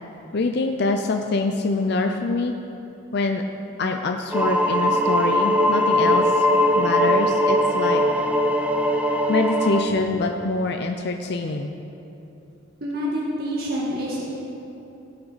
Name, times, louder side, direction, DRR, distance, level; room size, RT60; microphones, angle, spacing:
voice 1, 0.3-2.5 3.1-3.4 3.8-6.5 6.7-8.2 9.3-11.7, left 3 dB, 55° left, 4 dB, 0.5 m, -25 dB
sound 1, 4.3-9.8, equal, 5° right, 0.6 m, -20 dB
voice 2, 12.8-14.2, equal, 50° right, -5 dB, 1.7 m, -27 dB
17.0 x 8.8 x 4.1 m, 2.9 s
head